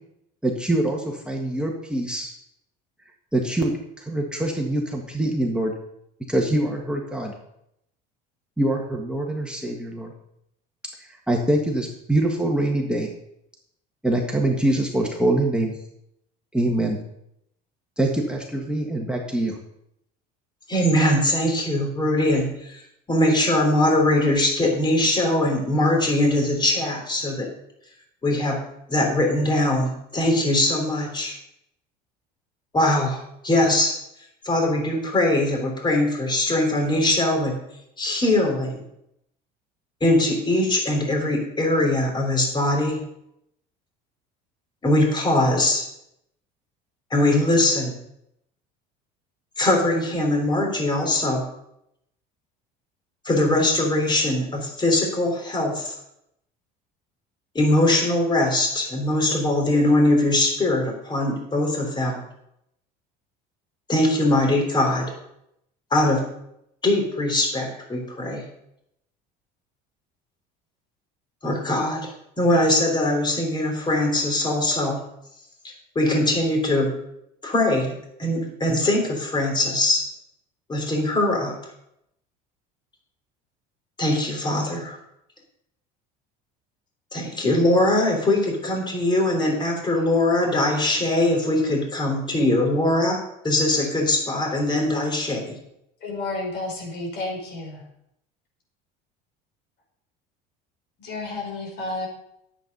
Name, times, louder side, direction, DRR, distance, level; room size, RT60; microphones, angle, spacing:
voice 1, 0.4-2.3 3.3-5.7 6.3-7.3 8.6-10.1 11.3-13.1 14.0-15.7 16.5-17.0 18.0-19.6, right 1 dB, 5° right, 0 dB, 1.6 m, -24 dB
voice 2, 20.7-22.8 23.1-27.5 28.2-28.6 28.9-31.3 32.7-33.2 33.4-33.9 34.4-37.6 38.0-38.8 40.0-43.0 44.8-45.8 47.1-47.9 49.6-51.4 53.2-55.9 57.5-62.2 63.9-65.1 65.9-66.2 66.8-68.4 71.4-72.1 72.4-75.0 75.6-76.9 77.4-80.0 80.7-81.5 84.0-85.0 87.1-93.2 93.4-95.5, left 1 dB, 25° left, 1 dB, 3.3 m, -21 dB
voice 3, 96.0-97.8 101.0-102.1, left 2 dB, 60° left, 0 dB, 5.4 m, -31 dB
10.0 x 8.2 x 5.4 m, 0.78 s
supercardioid pair, 105°, 20 cm